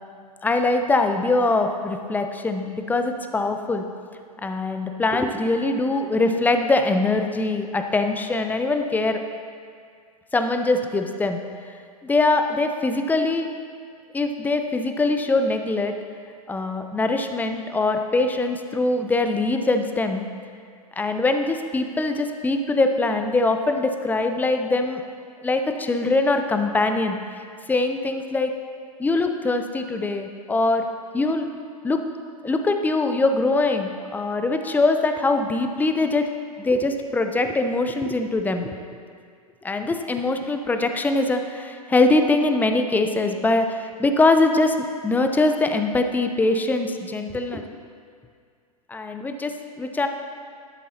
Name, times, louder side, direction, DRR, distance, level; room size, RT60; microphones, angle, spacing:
voice 1, 0.4-3.8 4.4-9.2 10.3-11.4 12.0-13.5 14.1-15.9 16.5-20.3 21.0-25.0 25.4-27.2 27.7-28.5 29.0-30.9 31.1-31.5 31.8-32.0 32.4-36.3 36.6-38.7 39.6-44.8 45.0-47.6 48.9-50.1, left 2 dB, 10° left, 6 dB, 0.6 m, -22 dB
12.5 x 11.5 x 2.9 m, 2.2 s
figure-of-eight pair, 95°, 20 cm